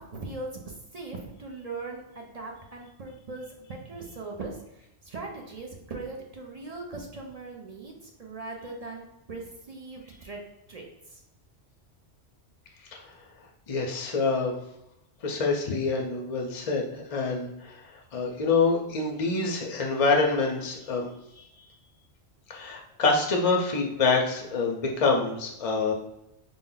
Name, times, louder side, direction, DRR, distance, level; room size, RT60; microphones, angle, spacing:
voice 1, 0.0-10.4 10.7-11.2, right 3 dB, 50° right, 0 dB, 0.5 m, -40 dB
voice 2, 13.7-14.5 15.2-17.8 18.1-21.1 21.4-21.5 22.5-25.9, left 4 dB, 50° left, 1 dB, 0.4 m, -26 dB
4.2 x 2.1 x 3.7 m, 0.83 s
omnidirectional pair, 1.2 m